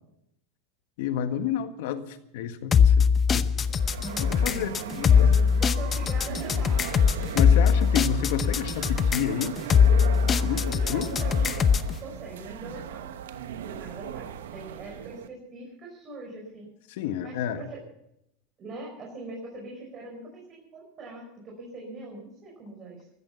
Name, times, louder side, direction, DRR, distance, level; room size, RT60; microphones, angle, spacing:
voice 1, 1.0-3.5 4.2-5.4 7.3-9.6 10.4-11.2 16.9-17.6, left 9 dB, 70° left, 9 dB, 1.7 m, -30 dB
sound 1, 2.7-11.9, left 6 dB, 25° left, 0.8 m, -21 dB
sound 2, 3.7-15.3, right 9 dB, 90° right, 1.1 m, -38 dB
voice 2, 4.0-8.1 10.5-11.7 12.0-13.0 13.5-16.7 17.2-17.8 18.6-23.0, right 2 dB, 35° right, -2 dB, 5.4 m, -42 dB
14.5 x 14.0 x 7.0 m, 0.80 s
supercardioid pair, 120°, 0 cm